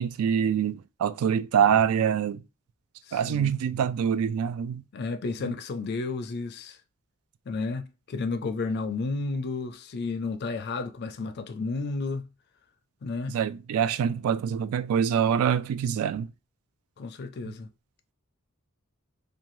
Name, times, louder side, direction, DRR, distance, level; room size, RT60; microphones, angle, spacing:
voice 1, 0.0-2.4 3.1-4.8 13.3-16.3, right 8 dB, 90° right, 0.3 m, -25 dB
voice 2, 3.0-3.5 4.9-6.8 7.5-12.3 13.0-13.4 17.0-17.7, left 3 dB, 50° left, 0.4 m, -32 dB
2.6 x 2.2 x 3.0 m
head